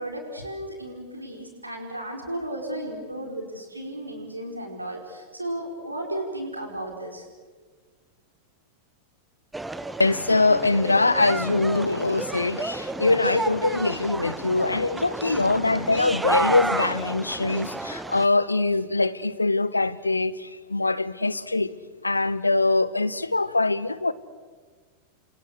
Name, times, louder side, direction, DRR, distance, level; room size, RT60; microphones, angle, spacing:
voice 1, 0.0-7.3, right 1 dB, 85° right, 4.9 m, -34 dB
sound 1, 9.5-18.3, right 2 dB, 10° right, 1.2 m, -31 dB
voice 2, 10.0-21.7 22.0-24.1, left 3 dB, 80° left, 0.9 m, -23 dB
29.5 x 26.5 x 6.6 m
figure-of-eight pair, 90°, 0 cm